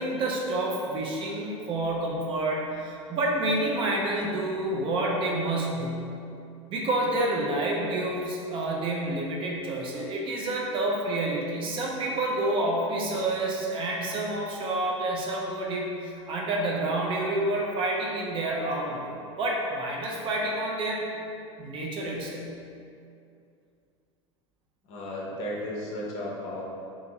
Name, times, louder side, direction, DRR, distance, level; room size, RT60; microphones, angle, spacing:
voice 1, 0.0-6.0 6.7-21.1 21.6-22.5, right 1 dB, 35° right, -2 dB, 0.4 m, -29 dB
voice 2, 24.8-26.6, left 1 dB, 40° left, -4 dB, 0.6 m, -34 dB
2.5 x 2.4 x 2.9 m, 2.5 s
figure-of-eight pair, 75°, 16 cm